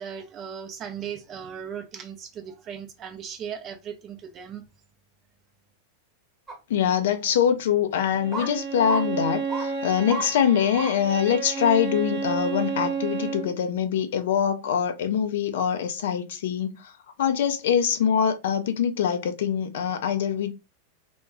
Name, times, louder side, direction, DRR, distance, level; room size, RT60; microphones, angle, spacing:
voice 1, 0.0-4.6, right 8 dB, 30° right, 0.5 m, -37 dB
sound 1, 6.5-6.6 7.3-7.4 8.3-8.5 8.8-9.0 9.5-9.7 10.1-10.3 10.7-10.9 11.5-11.6, right 2 dB, 15° right, 0.9 m, -32 dB
voice 2, 6.7-16.9 17.2-20.6, left 8 dB, 55° left, 0.4 m, -24 dB
Bowed string instrument, 8.2-13.6, right 5 dB, 55° right, 0.8 m, -31 dB
2.2 x 2.2 x 3.4 m
figure-of-eight pair, 90°, 0 cm